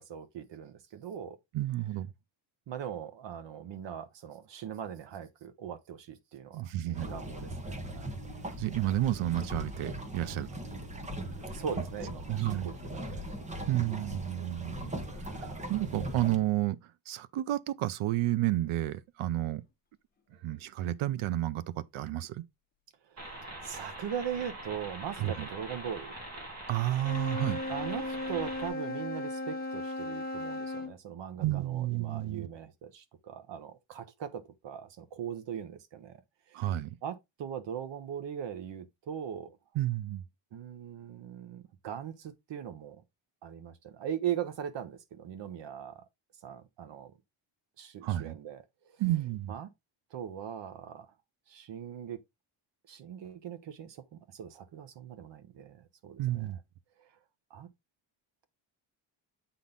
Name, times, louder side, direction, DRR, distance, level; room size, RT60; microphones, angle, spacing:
voice 1, 0.0-1.4 2.7-8.1 11.5-13.3 13.9-14.1 23.1-26.2 27.7-36.2 36.5-36.7 37.0-39.6 40.5-43.0 43.4-46.0 46.4-47.1 47.8-48.6 49.5-49.7 50.1-51.1 51.5-52.2 52.9-56.5 57.5-57.7, right 9 dB, 60° right, 1.2 m, -40 dB
voice 2, 1.5-2.1 6.5-7.1 8.6-10.5 12.3-12.7 13.7-14.9 15.4-16.8 17.1-19.6 20.4-21.6 21.9-22.4 25.2-25.5 26.7-27.6 31.4-32.5 36.5-37.0 39.7-40.2 48.0-48.3 49.0-49.5 56.2-56.6, right 14 dB, 85° right, 0.8 m, -31 dB
sound 1, 6.9-16.4, right 1 dB, 15° right, 1.0 m, -39 dB
sound 2, 23.2-28.7, right 1 dB, 30° right, 2.8 m, -43 dB
Wind instrument woodwind instrument, 27.0-30.9, left 2 dB, 20° left, 1.1 m, -36 dB
8.4 x 4.0 x 3.8 m
cardioid pair, 180°, 47 cm